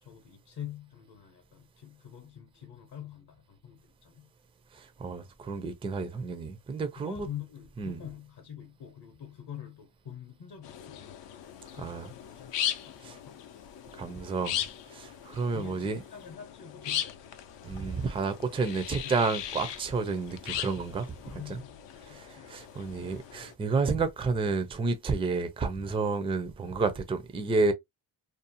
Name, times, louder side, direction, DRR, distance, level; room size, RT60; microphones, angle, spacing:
voice 1, 0.0-4.3 7.0-11.2 11.8-12.5 12.9-13.5 15.5-18.0 18.3-18.4 18.9-19.6 21.2-22.5, left 9 dB, 50° left, 0.8 m, -46 dB
voice 2, 4.7-7.3 7.8-8.0 11.8-12.1 13.0-13.2 14.0-14.6 14.9-16.0 17.6-21.6 22.1-27.7, right 4 dB, 15° right, 0.3 m, -30 dB
sound 1, 10.6-23.5, left 10 dB, 70° left, 0.6 m, -39 dB
2.6 x 2.0 x 2.6 m
cardioid pair, 120°, 45 cm